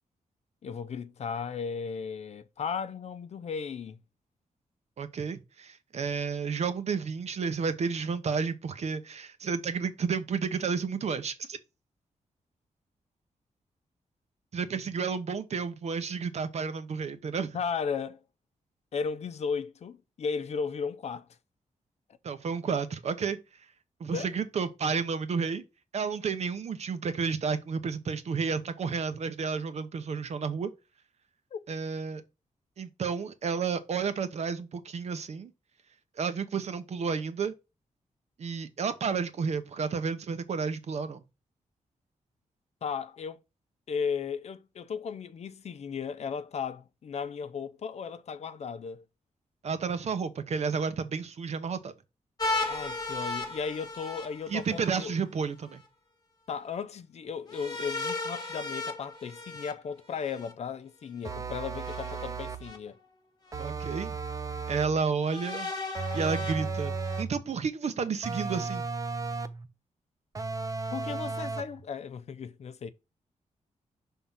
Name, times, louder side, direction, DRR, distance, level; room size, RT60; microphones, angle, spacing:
voice 1, 0.6-4.0 17.5-18.2 18.9-21.3 24.1-24.3 31.5-31.6 42.8-43.4 43.9-49.0 52.7-55.1 56.5-63.0 70.9-72.9, left 6 dB, 60° left, 0.6 m, -35 dB
voice 2, 5.0-11.6 14.5-17.6 22.2-23.4 24.0-25.6 25.9-30.7 31.7-32.2 32.8-35.5 36.2-37.5 38.4-41.2 49.6-51.9 54.5-55.8 63.6-64.2 64.7-65.7 66.1-68.8, right 5 dB, 60° right, 0.9 m, -31 dB
sound 1, 52.4-55.1 57.5-60.5 61.8-62.8 63.5-63.6 65.2-67.2, left 2 dB, 30° left, 1.3 m, -36 dB
sound 2, 61.2-62.7 63.5-65.0 65.9-67.4 68.2-69.7 70.3-71.8, right 4 dB, 25° right, 0.6 m, -35 dB
5.9 x 3.7 x 5.5 m
wide cardioid pair, 150°, 13 cm